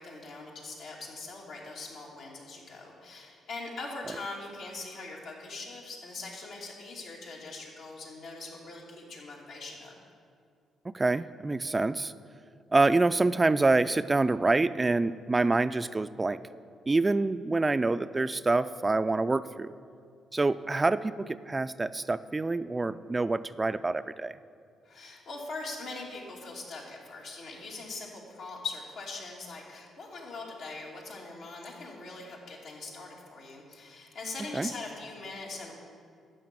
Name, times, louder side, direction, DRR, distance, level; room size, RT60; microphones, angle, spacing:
voice 1, 0.0-9.9 24.8-35.7, left 3 dB, 80° left, -3 dB, 2.8 m, -41 dB
voice 2, 10.8-12.1 12.7-16.4 16.9-19.7 20.3-24.4 34.5-34.7, right 3 dB, 25° right, 13 dB, 0.4 m, -26 dB
12.5 x 5.6 x 8.9 m, 2.3 s
cardioid pair, 75°, 0 cm